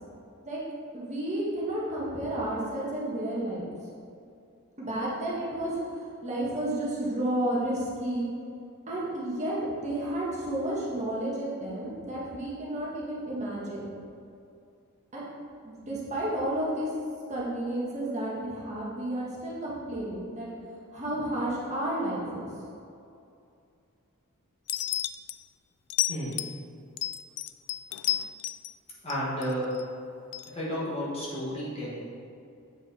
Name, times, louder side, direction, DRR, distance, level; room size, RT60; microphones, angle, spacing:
voice 1, 0.9-3.7 4.8-8.3 8.9-13.9 15.1-15.3 15.6-16.9 17.3-20.5 20.9-22.5, right 1 dB, 30° right, -6 dB, 1.5 m, -31 dB
sound 1, 24.7-25.4 25.9-26.6 27.0-28.7 29.1-29.8 30.3-30.5, left 13 dB, 90° left, 0.3 m, -31 dB
voice 2, 29.0-29.7 30.5-32.1, equal, 25° left, -7 dB, 1.6 m, -32 dB
7.8 x 4.8 x 4.3 m, 2.5 s
head